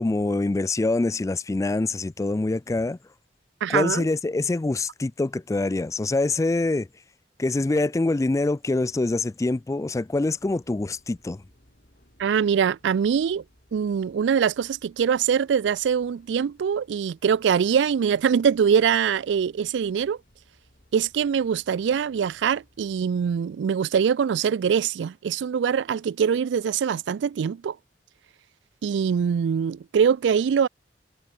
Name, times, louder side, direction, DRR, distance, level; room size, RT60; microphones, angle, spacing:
voice 1, 0.0-3.0 3.7-6.9 7.4-11.4, left 2 dB, 15° left, 0.3 m, -25 dB
voice 2, 3.6-4.1 12.2-13.4 13.7-20.2 20.9-27.8 28.8-30.7, right 7 dB, 75° right, 0.3 m, -23 dB
sound 1, 10.1-23.4, equal, 55° left, 6.4 m, -61 dB
head